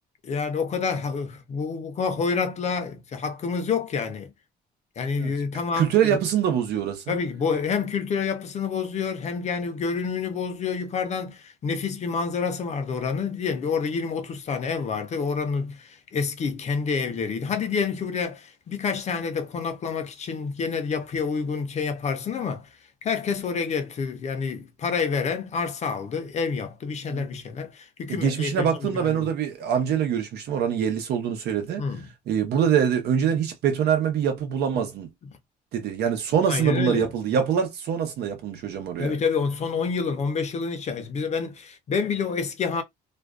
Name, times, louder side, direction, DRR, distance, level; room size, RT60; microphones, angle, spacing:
voice 1, 0.2-4.3 5.0-6.2 7.1-22.7 23.0-29.3 31.8-32.0 36.5-37.1 39.0-42.8, left 5 dB, 40° left, 0.6 m, -28 dB
voice 2, 5.8-7.2 27.1-27.3 28.1-31.9 32.3-35.1 35.7-39.1, right 8 dB, 75° right, 0.9 m, -24 dB
2.5 x 2.2 x 2.3 m
cardioid pair, 110°, 17 cm